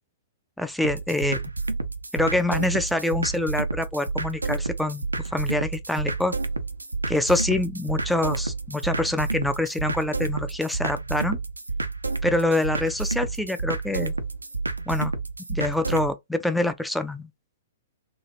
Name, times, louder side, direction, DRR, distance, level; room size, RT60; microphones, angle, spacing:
voice 1, 0.6-1.4 2.1-6.3 7.1-11.4 12.2-14.1 14.9-15.1 15.5-17.3, left 2 dB, ahead, 0.3 m, -26 dB
sound 1, 0.8-16.1, right 3 dB, 80° right, 0.4 m, -30 dB
2.9 x 2.3 x 2.6 m
figure-of-eight pair, 110°, 0 cm